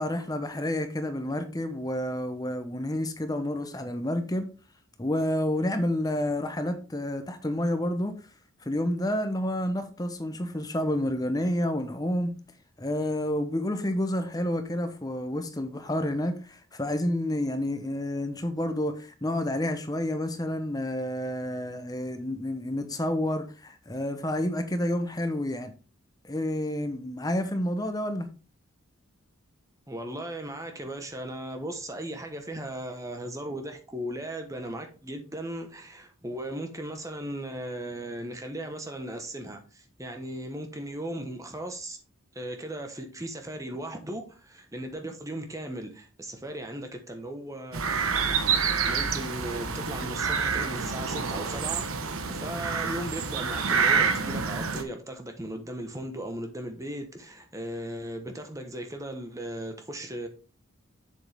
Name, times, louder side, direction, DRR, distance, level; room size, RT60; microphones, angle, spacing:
voice 1, 0.0-4.5 5.0-8.1 8.6-12.3 12.8-25.7 26.2-28.3, left 1 dB, 15° left, 0.9 m, -29 dB
voice 2, 29.9-42.0 42.3-48.3 48.9-51.9 52.3-60.3, right 1 dB, 15° right, 1.1 m, -37 dB
sound 1, 47.7-54.8, right 5 dB, 80° right, 1.0 m, -27 dB
7.4 x 7.1 x 3.5 m
head